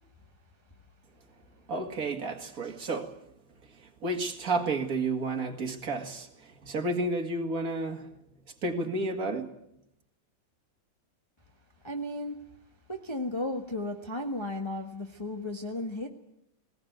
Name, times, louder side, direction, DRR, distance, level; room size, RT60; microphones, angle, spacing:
voice 1, 1.7-3.1 4.0-6.3 6.6-8.0 8.6-9.5, right 2 dB, 50° right, 2.5 m, -31 dB
voice 2, 11.8-12.4 12.9-16.1, left 1 dB, 15° left, 1.5 m, -34 dB
19.5 x 18.0 x 9.4 m
omnidirectional pair, 2.0 m